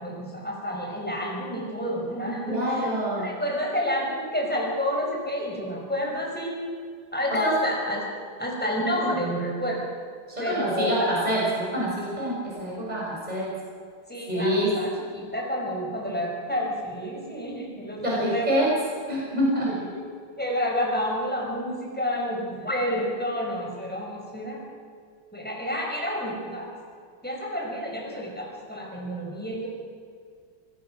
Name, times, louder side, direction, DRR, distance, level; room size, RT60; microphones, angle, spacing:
voice 1, 0.0-6.7 7.1-8.1 8.4-9.8 10.4-11.1 14.1-18.5 19.7-20.0 20.4-24.6 25.3-26.7 27.2-29.7, equal, 5° left, -1 dB, 5.3 m, -29 dB
voice 2, 2.4-3.3 7.3-7.6 10.4-13.5 14.3-14.7 18.0-18.7 19.1-19.7, right 1 dB, 20° right, -6 dB, 6.9 m, -26 dB
24.5 x 20.0 x 6.3 m, 2.1 s
omnidirectional pair, 2.3 m